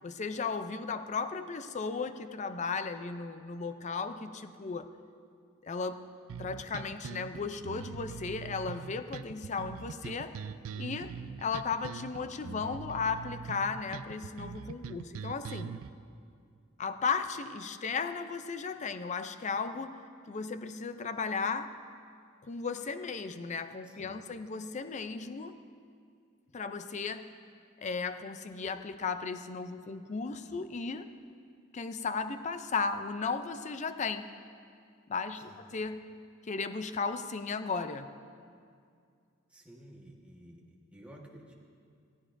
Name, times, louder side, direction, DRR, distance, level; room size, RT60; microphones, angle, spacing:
voice 1, 0.0-4.9 5.6-6.0 6.4-10.4 10.8-11.1 11.4-15.7 16.8-20.0 20.3-21.7 22.4-25.6 26.5-27.3 27.8-31.1 31.7-34.3 35.1-36.0 36.4-38.1, left 5 dB, 35° left, 10 dB, 0.4 m, -35 dB
sound 1, 6.3-15.9, right 6 dB, 85° right, 0.4 m, -42 dB
voice 2, 23.8-24.2 35.4-35.6 39.5-41.5, equal, 5° right, -3 dB, 1.3 m, -53 dB
16.0 x 14.5 x 2.6 m, 2.3 s
head